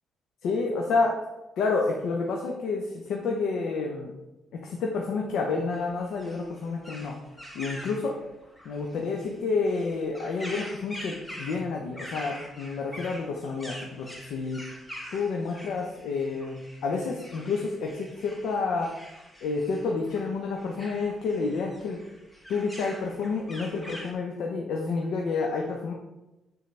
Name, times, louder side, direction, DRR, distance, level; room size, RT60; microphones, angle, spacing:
voice 1, 0.4-1.2 1.6-4.1 4.5-7.1 7.5-8.1 8.6-14.6 15.1-18.9 19.4-22.0 22.5-25.9, left 4 dB, 80° left, 0 dB, 0.8 m, -29 dB
sound 1, 5.7-24.1, equal, 10° left, 1.2 m, -44 dB
9.2 x 4.0 x 3.3 m, 0.98 s
cardioid pair, 90°, 0 cm